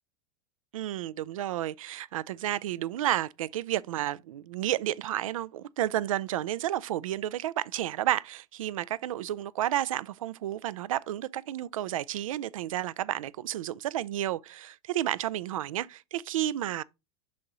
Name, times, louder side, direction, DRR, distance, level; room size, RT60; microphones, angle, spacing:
voice 1, 0.7-16.8, right 13 dB, 85° right, 0.4 m, -31 dB
6.3 x 5.5 x 2.9 m
hypercardioid pair, 110°, 17 cm